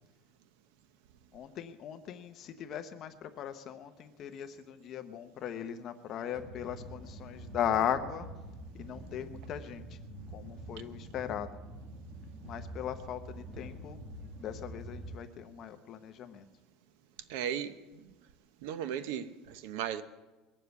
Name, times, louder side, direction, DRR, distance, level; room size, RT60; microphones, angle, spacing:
voice 1, 1.3-8.3 8.7-10.0 10.3-11.6 12.4-14.0 14.4-16.5, left 9 dB, 35° left, 0.8 m, -38 dB
sound 1, 6.3-15.2, right 1 dB, 30° right, 1.8 m, -46 dB
voice 2, 17.3-18.1 18.6-20.0, right 9 dB, 70° right, 0.9 m, -36 dB
21.5 x 7.5 x 8.1 m
cardioid pair, 180°, 0 cm